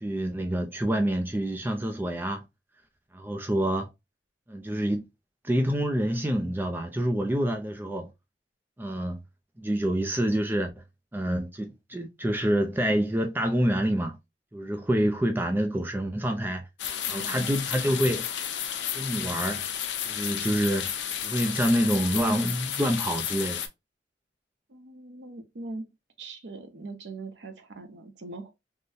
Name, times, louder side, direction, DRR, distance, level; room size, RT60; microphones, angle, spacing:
voice 1, 0.0-2.5 3.1-3.9 4.5-5.0 5.4-8.1 8.8-9.2 9.6-10.7 11.1-14.2 14.5-16.6 17.1-18.3 18.9-19.6 20.1-20.9 21.2-23.7, equal, 10° right, 0.4 m, -27 dB
sound 1, 16.8-23.7, left 9 dB, 75° left, 0.5 m, -32 dB
voice 2, 17.0-17.5 24.7-25.9 26.2-28.5, right 3 dB, 70° right, 0.7 m, -41 dB
3.7 x 2.1 x 2.6 m
head